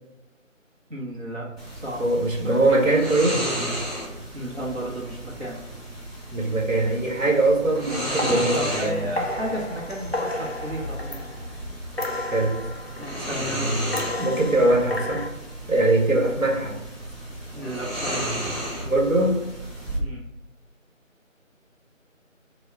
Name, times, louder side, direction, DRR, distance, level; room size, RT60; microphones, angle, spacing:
voice 1, 0.9-2.1 2.4-2.9 4.3-5.6 8.5-11.2 13.0-13.8 17.5-18.2 20.0-20.2, equal, 55° right, -5 dB, 1.0 m, -33 dB
sound 1, 1.6-20.0, right 1 dB, ahead, 0.6 m, -33 dB
voice 2, 2.0-3.5 6.3-9.0 12.3-12.6 14.2-15.2 15.7-16.8 18.8-19.5, right 2 dB, 75° right, -1 dB, 1.2 m, -21 dB
sound 2, 7.9-11.6 12.0-13.4 13.9-15.3, left 1 dB, 50° left, 0.5 m, -32 dB
4.1 x 2.2 x 4.6 m, 0.95 s
figure-of-eight pair, 170°, 40 cm